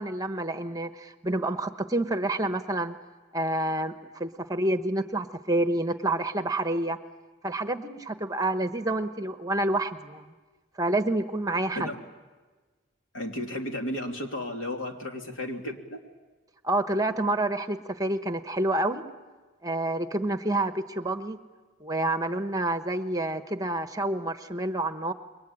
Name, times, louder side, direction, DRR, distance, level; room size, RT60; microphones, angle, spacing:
voice 1, 0.0-3.0 3.3-7.0 7.4-10.3 10.8-11.9 16.6-19.1 19.6-21.4 21.8-25.1, right 1 dB, 20° right, 8 dB, 1.1 m, -28 dB
voice 2, 13.1-16.0, left 1 dB, 80° left, 2 dB, 3.2 m, -33 dB
28.0 x 22.5 x 8.8 m, 1.3 s
head